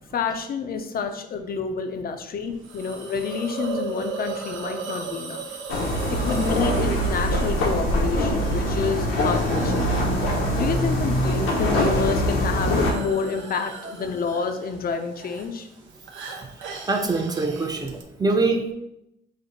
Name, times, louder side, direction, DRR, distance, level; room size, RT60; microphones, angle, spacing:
voice 1, 0.1-5.4 5.8-9.9 10.3-15.7, left 5 dB, 50° left, 7 dB, 0.6 m, -29 dB
Hiss, 2.6-18.0, right 5 dB, 75° right, 0.7 m, -38 dB
sound 1, 5.7-12.9, equal, 85° left, 0.9 m, -23 dB
voice 2, 16.9-18.7, right 3 dB, 20° right, 3 dB, 0.6 m, -24 dB
5.1 x 2.1 x 3.9 m, 0.82 s
cardioid pair, 90°, 20 cm